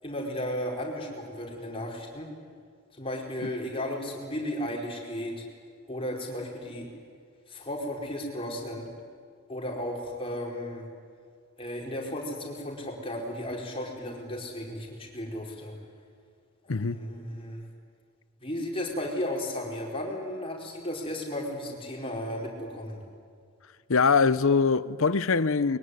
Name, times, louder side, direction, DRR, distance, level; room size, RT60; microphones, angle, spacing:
voice 1, 0.0-2.3 2.9-5.4 5.9-6.9 7.5-8.9 9.5-10.8 11.6-15.7 16.6-17.7 18.4-23.0, left 1 dB, 25° left, 4.8 m, -34 dB
voice 2, 16.7-17.0 23.9-25.8, left 5 dB, 65° left, 0.8 m, -23 dB
22.5 x 22.5 x 9.7 m
head